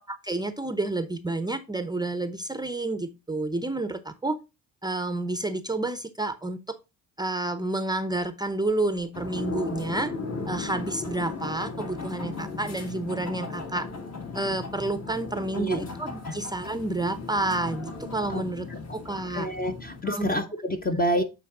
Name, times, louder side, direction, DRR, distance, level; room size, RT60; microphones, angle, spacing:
voice 1, 0.1-4.4 4.8-6.8 7.2-10.1 10.5-13.9 14.3-18.7 18.9-19.5 20.1-20.4 20.9-21.0, right 2 dB, 10° right, 11 dB, 0.6 m, -30 dB
sound 1, 9.1-20.0, left 4 dB, 40° left, 1.7 m, -36 dB
voice 2, 15.5-15.9 16.2-16.4 18.3-18.4 18.7-19.0 19.3-21.2, equal, 25° left, 6 dB, 0.8 m, -28 dB
8.5 x 3.9 x 3.7 m, 0.26 s
supercardioid pair, 65°, 38 cm